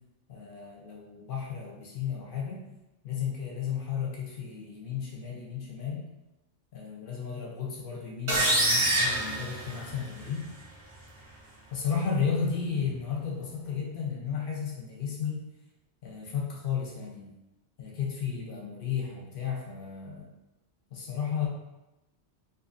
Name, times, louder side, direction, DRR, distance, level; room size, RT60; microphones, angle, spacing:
voice 1, 0.3-2.7 3.0-6.0 6.7-10.5 11.7-15.5 16.0-17.3 17.8-20.3 20.9-21.5, left 7 dB, 55° left, -2 dB, 0.7 m, -33 dB
sound 1, 8.3-10.2, right 1 dB, 50° right, 0.3 m, -26 dB
2.5 x 2.5 x 2.4 m, 0.95 s
omnidirectional pair, 1.3 m